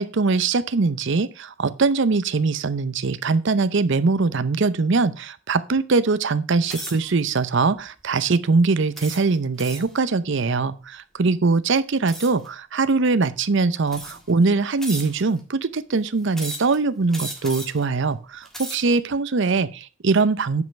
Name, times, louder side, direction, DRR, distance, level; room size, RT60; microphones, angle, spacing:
voice 1, 0.0-20.6, right 4 dB, 60° right, 14 dB, 0.6 m, -22 dB
sound 1, 6.7-7.1 7.8-8.0 9.0-10.0 12.1-12.5 13.3-13.4 13.9-14.3 14.8-15.4 16.3-16.8 17.1-17.8 18.3-19.0, equal, ahead, 1.7 m, -35 dB
9.4 x 5.4 x 5.7 m, 0.33 s
head